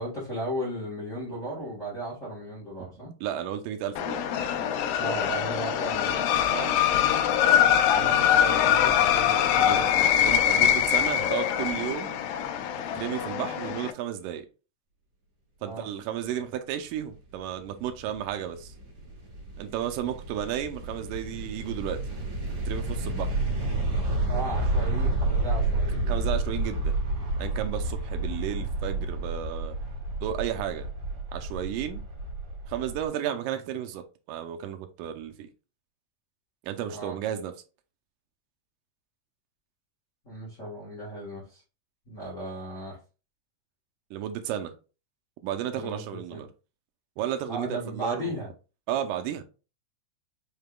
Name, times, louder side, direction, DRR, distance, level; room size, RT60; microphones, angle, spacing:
voice 1, 0.0-3.1 5.0-6.3 7.8-9.8 15.6-15.8 20.0-20.1 24.3-26.2 36.9-37.2 40.2-41.6 42.1-43.0 45.7-46.4 47.5-48.5, right 1 dB, 55° left, -7 dB, 0.8 m, -36 dB
voice 2, 3.2-4.2 6.5-6.7 9.6-9.9 10.3-12.2 13.0-14.5 15.6-18.7 19.6-22.0 22.7-23.4 26.1-26.9 27.4-29.8 30.2-30.9 31.3-32.0 32.7-35.5 36.6-37.5 44.1-44.7 45.4-46.5 47.2-48.3 48.9-49.4, right 10 dB, 85° right, 6 dB, 2.2 m, -33 dB
sound 1, 4.0-13.9, left 10 dB, 85° left, 2.2 m, -23 dB
sound 2, 17.8-33.1, right 2 dB, 55° right, 2.5 m, -30 dB
5.6 x 3.5 x 2.2 m, 0.33 s
omnidirectional pair, 3.8 m